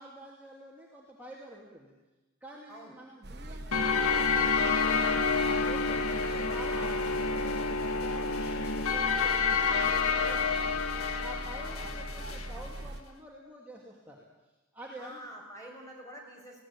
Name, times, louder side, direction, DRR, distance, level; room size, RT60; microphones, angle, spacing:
voice 1, 0.0-2.0 2.4-5.3 5.7-10.8 11.2-14.3 14.7-15.3, right 1 dB, 5° right, -4 dB, 2.7 m, -47 dB
sound 1, 3.2-13.0, right 1 dB, 50° right, 1.1 m, -41 dB
sound 2, 3.7-12.5, left 4 dB, 80° left, 1.6 m, -29 dB
voice 2, 6.2-6.6 11.6-11.9 15.0-16.6, right 1 dB, 15° left, 1 dB, 5.2 m, -47 dB
20.5 x 17.0 x 9.9 m, 1.1 s
head